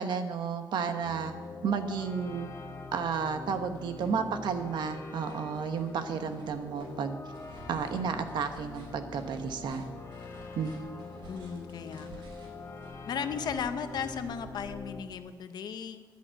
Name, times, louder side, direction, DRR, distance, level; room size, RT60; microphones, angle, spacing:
voice 1, 0.0-1.3 1.6-2.5 2.9-7.2 7.7-9.8 10.5-10.8, right 6 dB, 70° right, 8 dB, 1.1 m, -32 dB
sound 1, 1.0-15.0, left 4 dB, 35° left, 1.1 m, -44 dB
sound 2, 2.5-3.3 3.5-15.2, right 2 dB, 85° right, 4.7 m, -53 dB
voice 2, 11.3-12.5 13.1-16.0, left 7 dB, 60° left, 9 dB, 0.8 m, -36 dB
10.5 x 8.1 x 9.1 m, 1.5 s
wide cardioid pair, 170°, 8 cm